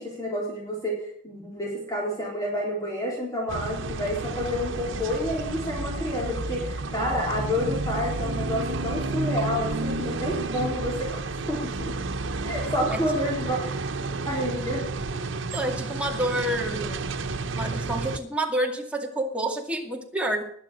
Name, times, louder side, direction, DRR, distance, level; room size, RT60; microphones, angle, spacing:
voice 1, 0.0-12.0 12.4-13.6 14.2-14.8 15.1-15.2, left 1 dB, 20° left, -3 dB, 4.0 m, -29 dB
sound 1, 3.5-18.2, right 3 dB, 90° right, 1.0 m, -31 dB
voice 2, 15.5-17.0 17.6-20.4, right 1 dB, 5° right, 0 dB, 2.3 m, -28 dB
20.5 x 7.0 x 6.5 m, 0.64 s
head